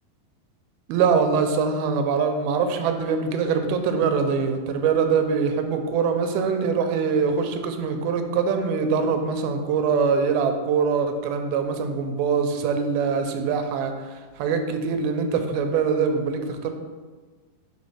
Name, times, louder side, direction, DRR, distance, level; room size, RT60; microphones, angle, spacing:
voice 1, 0.9-13.9 14.4-16.7, right 5 dB, 85° right, 6 dB, 2.5 m, -23 dB
5.2 x 4.7 x 5.6 m, 1.4 s
omnidirectional pair, 4.2 m